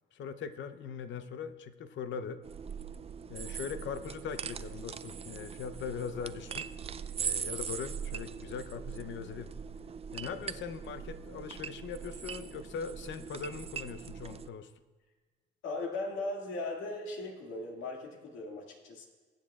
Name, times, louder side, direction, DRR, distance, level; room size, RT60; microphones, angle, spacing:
voice 1, 0.1-2.4 3.3-6.7 7.2-9.5 10.1-14.7, left 6 dB, 70° left, 11 dB, 0.7 m, -40 dB
plastic rattles clinking together, 2.4-14.5, right 7 dB, 30° right, 0.4 m, -41 dB
voice 2, 10.3-10.6 15.6-19.1, left 2 dB, 90° left, 0 dB, 2.0 m, -38 dB
22.5 x 8.5 x 2.4 m, 1.4 s
cardioid pair, 90°, 20 cm